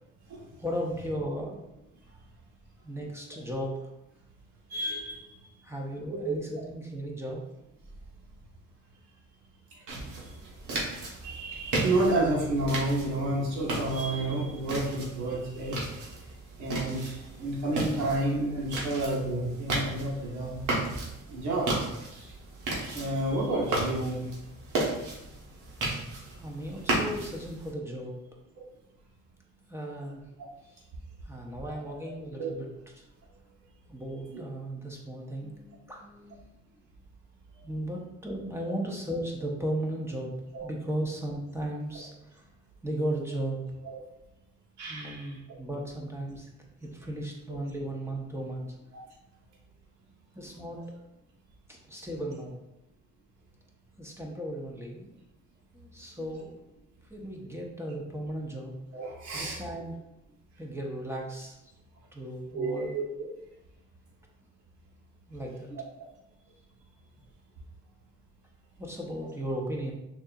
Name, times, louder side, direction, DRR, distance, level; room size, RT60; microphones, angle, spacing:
voice 1, 0.6-1.6 2.8-3.9 5.6-7.5 25.0-25.3 26.3-28.2 29.7-30.2 30.7-30.8 31.2-32.7 32.9-33.1 33.9-36.4 37.6-40.3 40.6-42.4 42.8-43.6 44.9-46.5 46.8-48.7 50.3-50.8 51.7-52.5 54.0-55.2 55.7-56.5 57.1-58.7 59.3-60.0 60.6-61.7 62.1-62.9 65.3-65.7 68.8-69.9, right 1 dB, 10° right, -1 dB, 0.9 m, -36 dB
voice 2, 4.7-5.5 6.2-6.3 9.7-10.2 10.9-16.2 16.6-20.8 21.3-21.7 22.1-22.3 22.7-24.4 32.4-32.5 34.3-34.4 40.5-40.6 43.8-44.0 44.8-45.3 58.9-59.6 62.5-63.0 65.7-65.8, right 2 dB, 65° right, -5 dB, 1.6 m, -31 dB
sound 1, 9.9-27.7, right 2 dB, 85° right, 1.3 m, -35 dB
6.4 x 2.9 x 2.4 m, 0.89 s
cardioid pair, 90°, 30 cm